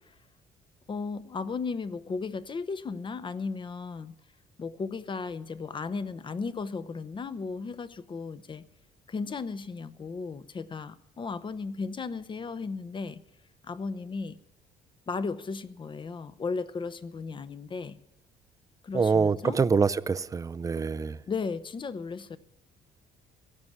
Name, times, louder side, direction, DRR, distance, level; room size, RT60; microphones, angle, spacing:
voice 1, 0.9-4.2 4.6-8.7 9.1-13.2 13.6-14.4 15.1-18.0 18.8-19.6 21.3-22.4, left 4 dB, 30° left, 0.7 m, -35 dB
voice 2, 18.9-21.2, right 5 dB, 20° right, 0.4 m, -25 dB
16.5 x 7.1 x 9.3 m
cardioid pair, 110°, 17 cm